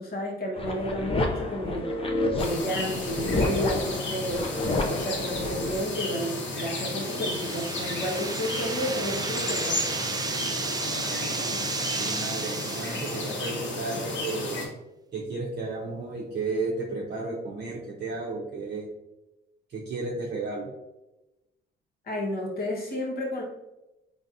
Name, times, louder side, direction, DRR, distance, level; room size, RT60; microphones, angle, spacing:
voice 1, 0.0-2.1 2.3-4.5 4.8-9.9 22.0-23.4, equal, 50° left, -2 dB, 1.3 m, -32 dB
sound 1, 0.6-5.8, left 2 dB, 30° left, 0.6 m, -29 dB
sound 2, 2.4-14.7, left 2 dB, 65° left, 1.0 m, -33 dB
sound 3, 6.8-13.7, right 4 dB, 20° right, 0.4 m, -33 dB
voice 2, 11.9-14.7 15.1-18.9 19.7-20.7, right 3 dB, 55° right, -3 dB, 0.7 m, -33 dB
3.9 x 3.3 x 2.6 m, 0.99 s
cardioid pair, 90°, 20 cm